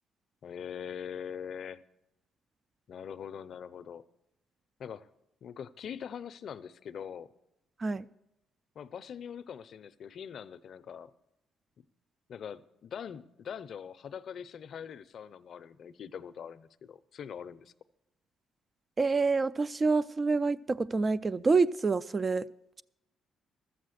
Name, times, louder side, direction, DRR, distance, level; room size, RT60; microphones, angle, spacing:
voice 1, 0.4-1.8 2.9-4.0 4.8-5.1 5.4-7.3 8.8-11.1 12.3-17.7, left 8 dB, 60° left, 14 dB, 0.5 m, -42 dB
voice 2, 19.0-22.5, right 4 dB, 30° right, 16 dB, 0.3 m, -27 dB
13.0 x 7.6 x 6.5 m, 0.89 s
cardioid pair, 90°, 0 cm